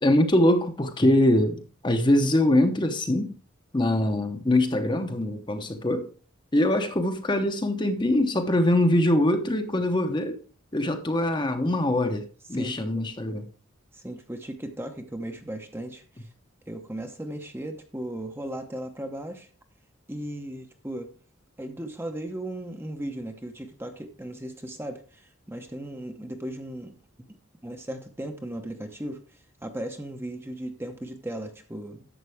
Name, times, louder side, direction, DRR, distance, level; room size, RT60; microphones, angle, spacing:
voice 1, 0.0-3.3 3.7-6.1 6.5-10.4 10.7-12.2 12.5-13.4, left 1 dB, 20° left, 0.9 m, -23 dB
voice 2, 12.5-13.1 13.9-16.3 16.7-19.5 20.1-21.1 21.6-27.0 27.3-27.4 27.6-32.1, right 1 dB, 10° right, 0.8 m, -36 dB
11.0 x 7.4 x 3.5 m
head